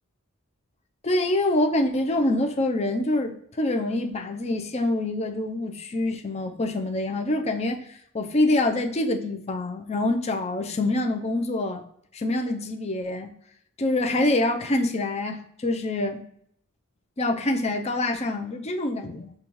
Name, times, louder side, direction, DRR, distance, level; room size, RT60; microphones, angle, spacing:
voice 1, 1.0-7.9 8.1-11.8 12.1-13.3 13.8-16.2 17.2-19.3, left 2 dB, 30° left, 3 dB, 0.5 m, -25 dB
5.3 x 2.3 x 3.0 m, 0.69 s
head